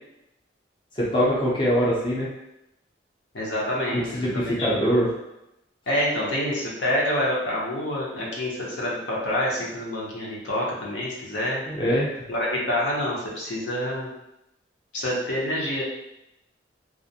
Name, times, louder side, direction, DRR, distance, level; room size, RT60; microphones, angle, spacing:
voice 1, 1.0-2.3 3.9-5.1 11.7-12.1, equal, 25° left, -7 dB, 0.5 m, -23 dB
voice 2, 3.3-4.7 5.9-11.6 12.3-14.1 14.9-15.8, left 1 dB, 80° left, -4 dB, 0.7 m, -27 dB
2.4 x 2.0 x 2.7 m, 0.87 s
head